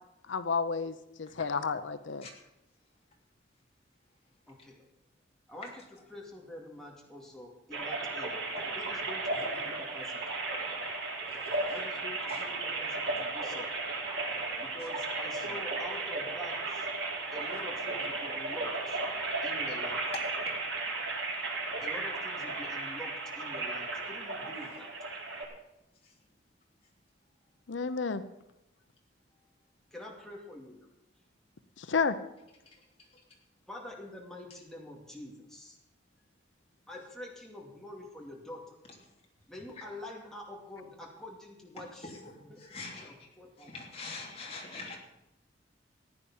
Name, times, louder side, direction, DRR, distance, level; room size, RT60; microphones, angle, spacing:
voice 1, 0.3-2.3 27.7-28.2 31.8-32.2, left 5 dB, 90° left, 11 dB, 0.7 m, -31 dB
voice 2, 4.5-4.8 5.5-10.2 11.7-13.7 14.6-16.9 17.3-19.0 19.4-20.0 21.8-24.9 29.9-30.9 33.7-35.8 36.9-38.8 39.5-43.7, left 1 dB, 5° left, -2 dB, 2.3 m, -46 dB
sound 1, 7.7-25.4, right 3 dB, 80° right, 4.0 m, -35 dB
voice 3, 20.1-20.5 26.0-26.1 32.6-33.2 39.8-39.9 42.0-43.3 43.6-45.0, left 3 dB, 35° left, -1 dB, 3.0 m, -44 dB
15.0 x 9.9 x 5.6 m, 0.91 s
head